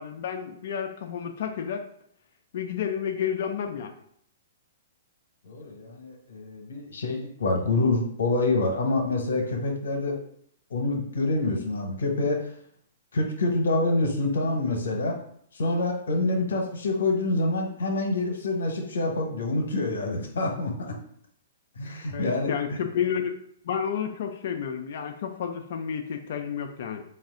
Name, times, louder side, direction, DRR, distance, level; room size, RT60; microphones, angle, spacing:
voice 1, 0.0-1.8 2.5-3.9 22.1-23.4 23.6-27.0, left 8 dB, 60° left, 5 dB, 0.4 m, -30 dB
voice 2, 5.4-10.2 10.7-12.5 13.1-15.2 15.5-20.9 21.8-22.8, left 2 dB, 80° left, 2 dB, 1.0 m, -26 dB
4.1 x 2.5 x 3.6 m, 0.65 s
hypercardioid pair, 130°, 0 cm